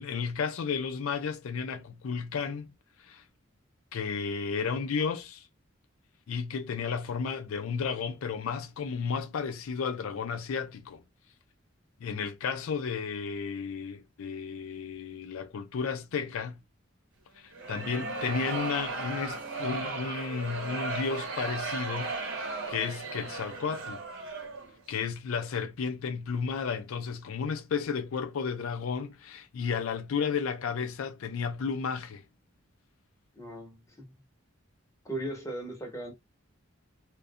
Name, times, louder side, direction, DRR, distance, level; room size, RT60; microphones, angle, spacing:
voice 1, 0.0-2.7 3.0-3.2 3.9-5.5 6.3-11.0 12.0-16.6 17.4-24.0 24.9-32.2, left 6 dB, 80° left, 0.4 m, -33 dB
sound 1, 17.5-24.7, right 3 dB, 65° right, 0.8 m, -36 dB
voice 2, 17.8-18.1 33.3-34.1 35.0-36.1, right 1 dB, 15° left, 0.8 m, -38 dB
2.4 x 2.2 x 2.5 m
head